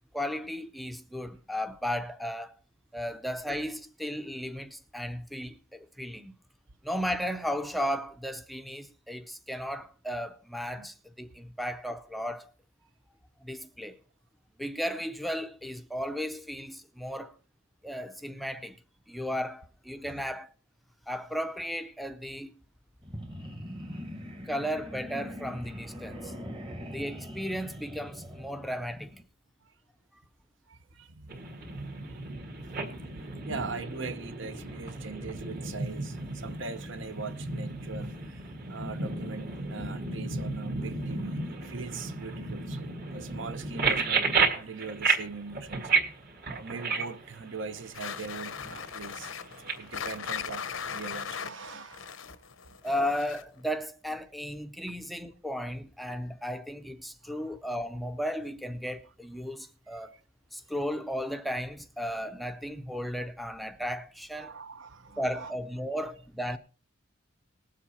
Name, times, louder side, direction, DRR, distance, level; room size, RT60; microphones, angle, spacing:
voice 1, 0.1-2.6 2.9-6.3 6.8-12.5 13.4-14.0 14.6-17.4 17.8-18.8 19.1-20.5 21.1-22.5 24.5-26.3 26.9-29.1 52.8-60.1 60.5-64.5 65.2-66.6, equal, ahead, 0.5 m, -35 dB
sound 1, 23.0-29.2, equal, 25° right, 1.2 m, -42 dB
voice 2, 30.7-31.3 32.0-32.2 33.5-45.9 46.5-49.3 49.6-52.4 57.2-57.5 59.9-60.0 64.4-65.5, right 4 dB, 65° right, 0.8 m, -41 dB
sound 2, 31.3-51.2, right 4 dB, 50° right, 2.0 m, -33 dB
sound 3, 47.9-53.6, left 7 dB, 75° left, 0.7 m, -39 dB
19.0 x 7.5 x 4.2 m
head